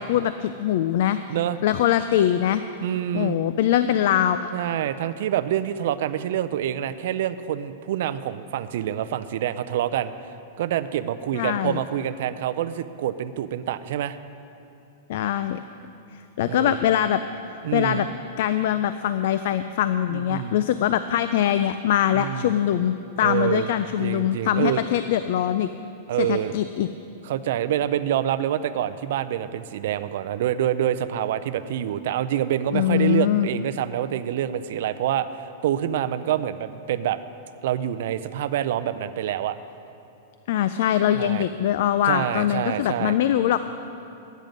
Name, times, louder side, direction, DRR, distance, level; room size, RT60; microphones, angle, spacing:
voice 1, 0.0-1.2 1.6-2.6 3.1-4.5 11.3-11.8 15.1-15.6 16.4-17.2 17.7-18.1 18.4-25.7 26.2-26.9 32.7-33.5 40.5-43.6, left 11 dB, 60° left, 11 dB, 0.3 m, -22 dB
voice 2, 2.8-3.4 4.5-10.1 10.6-14.2 16.5-16.8 17.6-18.1 20.1-20.6 22.1-22.5 23.2-23.7 24.0-24.8 26.1-26.6 27.2-37.2 37.6-39.6 41.1-41.5 42.1-43.2, right 11 dB, 65° right, 12 dB, 0.4 m, -26 dB
12.0 x 9.2 x 5.2 m, 2.8 s
supercardioid pair, 160°, 0 cm